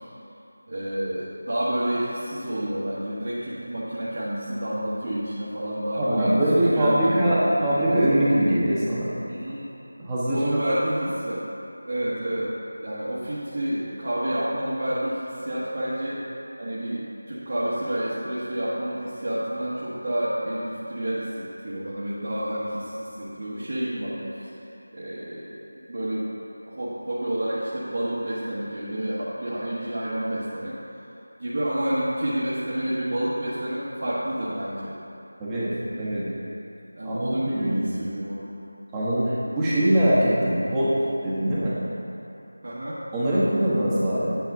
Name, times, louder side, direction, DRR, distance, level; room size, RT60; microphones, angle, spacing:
voice 1, 0.7-6.4 6.7-7.6 9.3-9.6 10.3-11.5 11.8-12.5 12.8-16.2 16.6-24.5 24.9-25.6 25.8-26.3 26.7-30.8 31.4-34.9 36.9-38.5 39.1-39.4 42.6-43.0, right 1 dB, 50° right, -10 dB, 1.3 m, -29 dB
voice 2, 5.9-9.1 10.0-10.8 35.4-35.7 36.0-36.2 37.0-37.9 38.9-40.9 41.2-41.7 43.1-44.4, right 1 dB, 10° right, -10 dB, 1.1 m, -22 dB
9.0 x 8.0 x 2.7 m, 2.8 s
figure-of-eight pair, 170°, 0 cm